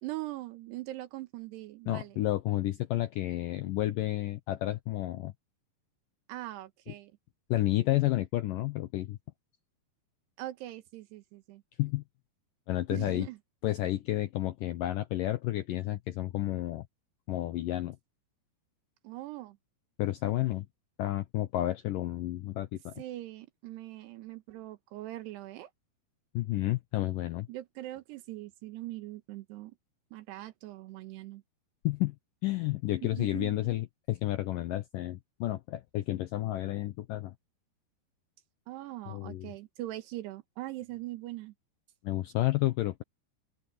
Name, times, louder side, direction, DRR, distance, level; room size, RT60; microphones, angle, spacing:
voice 1, 0.0-2.2 6.3-7.1 10.4-11.6 12.9-13.4 19.0-19.6 23.0-25.7 27.5-29.7 30.1-31.4 33.1-33.7 38.7-41.5, right 16 dB, 80° right, 3.1 m, -41 dB
voice 2, 1.9-5.3 7.5-9.2 11.8-12.0 12.7-13.3 13.6-16.9 17.3-18.0 20.0-20.7 21.0-22.9 26.3-27.5 31.8-32.2 32.4-37.3 39.1-39.5 42.0-43.0, left 15 dB, 80° left, 2.0 m, -31 dB
open air
omnidirectional pair, 4.8 m